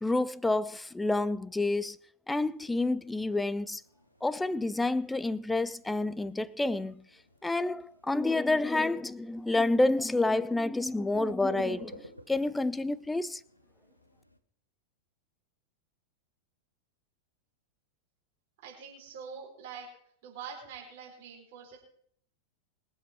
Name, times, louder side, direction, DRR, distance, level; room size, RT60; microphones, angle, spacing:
voice 1, 0.0-2.0 2.3-3.8 4.2-7.0 7.4-13.4, left 2 dB, 5° left, 0.5 m, -29 dB
sound 1, 2.4-14.4, equal, 90° left, 1.2 m, -53 dB
voice 2, 18.6-19.9 20.2-21.8, right 6 dB, 50° right, 4.6 m, -44 dB
22.5 x 7.8 x 4.6 m
figure-of-eight pair, 90°, 0 cm